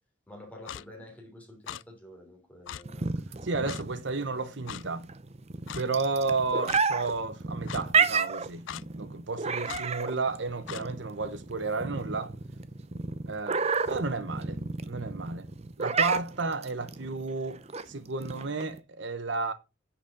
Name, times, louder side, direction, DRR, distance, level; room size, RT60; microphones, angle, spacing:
voice 1, 0.3-3.1, left 1 dB, 10° left, 3.4 m, -48 dB
Clock, 0.7-0.8 1.7-1.8 2.7-2.8 3.7-3.8 4.7-4.8 5.7-5.8 6.7-6.8 7.7-7.8 8.7-8.8 9.7-9.8 10.7-10.8, left 9 dB, 80° left, 0.4 m, -39 dB
sound 1, 2.9-18.8, right 5 dB, 35° right, 0.7 m, -31 dB
voice 2, 3.4-5.1 5.7-8.6 8.9-12.3 13.3-14.6 14.8-15.4 15.8-17.6 17.9-19.5, right 3 dB, 65° right, 1.0 m, -32 dB
10.0 x 6.0 x 5.2 m
head